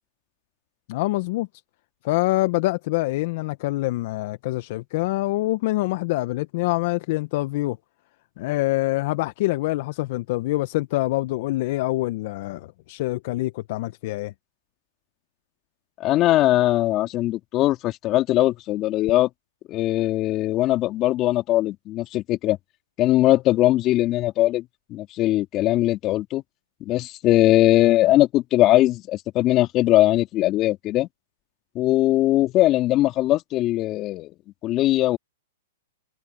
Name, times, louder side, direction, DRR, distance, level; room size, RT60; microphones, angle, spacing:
voice 1, 0.9-1.5 2.0-7.8 8.4-14.3, left 19 dB, 50° left, 1.1 m, -25 dB
voice 2, 16.0-19.3 19.7-22.6 23.0-24.6 24.9-26.4 26.8-31.1 31.7-34.3 34.6-35.2, left 15 dB, 30° left, 3.4 m, -20 dB
hypercardioid pair, 135°, 0 cm